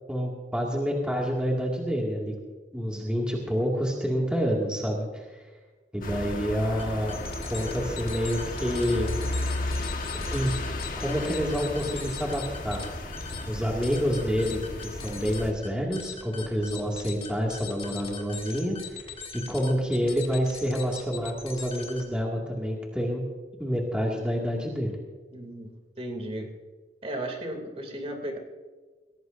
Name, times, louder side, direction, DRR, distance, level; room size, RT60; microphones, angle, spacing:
voice 1, 0.1-2.3 2.7-5.4 5.9-7.2 7.5-9.2 10.3-12.8 13.5-19.0 19.3-23.3 23.6-24.9, equal, 5° right, -3 dB, 2.1 m, -28 dB
sound 1, 6.0-15.5, left 2 dB, 50° left, 1.4 m, -34 dB
sound 2, 6.8-22.2, left 5 dB, 30° left, 2.0 m, -41 dB
voice 2, 25.3-25.7 26.0-26.5 27.0-28.4, right 1 dB, 35° right, 3 dB, 2.8 m, -35 dB
23.0 x 17.5 x 2.7 m, 1.3 s
head